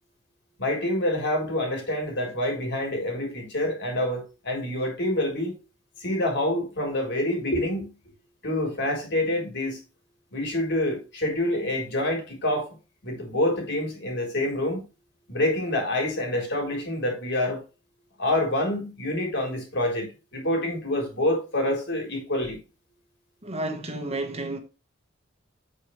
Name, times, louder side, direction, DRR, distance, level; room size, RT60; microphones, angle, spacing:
voice 1, 0.6-5.5 6.0-7.9 8.4-9.8 10.3-12.7 13.0-14.8 15.3-17.6 18.2-22.6, left 1 dB, 60° left, 3.9 m, -27 dB
voice 2, 23.4-24.6, right 2 dB, 35° right, 1.5 m, -31 dB
8.3 x 7.0 x 3.3 m
head